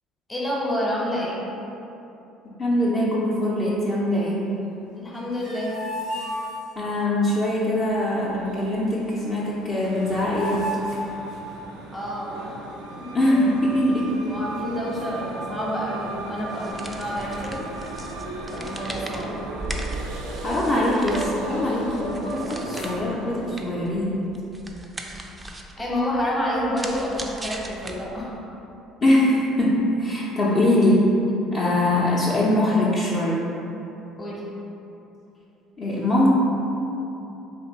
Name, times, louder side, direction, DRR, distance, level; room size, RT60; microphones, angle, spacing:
voice 1, 0.3-1.4 5.0-5.7 11.9-12.6 12.9-13.1 14.0-17.6 18.5-19.4 25.8-28.3 34.1-34.4, equal, 15° left, -5 dB, 0.9 m, -28 dB
voice 2, 2.6-4.4 6.8-10.7 13.1-14.1 20.4-24.2 29.0-31.1 31.5-33.4 35.8-36.3, left 1 dB, 40° left, -7 dB, 0.6 m, -22 dB
sound 1, 5.1-7.1 9.3-9.4 9.6-11.9 13.2-14.0 14.6-14.7 14.9-16.1 16.4-16.7 17.3-17.9 18.2-18.4 18.6-21.5 21.9-23.0, equal, 75° left, 0.6 m, -36 dB
sound 2, 7.8-23.6, right 2 dB, 85° right, 0.4 m, -37 dB
sound 3, 16.5-28.4, right 1 dB, 15° right, 0.3 m, -38 dB
2.8 x 2.6 x 4.3 m, 2.9 s
supercardioid pair, 100°, 0 cm